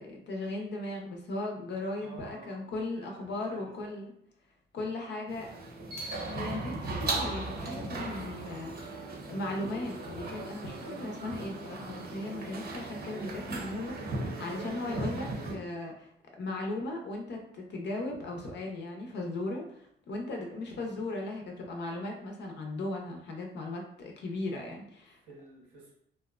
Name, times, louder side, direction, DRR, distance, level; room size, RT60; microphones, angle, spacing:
voice 1, 0.0-4.1 4.7-5.5 6.3-16.1 16.4-25.2, left 2 dB, 60° left, 1 dB, 0.6 m, -37 dB
voice 2, 2.0-2.6 2.9-3.9 25.1-25.9, right 2 dB, 85° right, -3 dB, 1.1 m, -51 dB
sound 1, 5.3-15.6, right 2 dB, 50° right, 0.7 m, -37 dB
2.6 x 2.1 x 2.3 m, 0.70 s
cardioid pair, 90°, 20 cm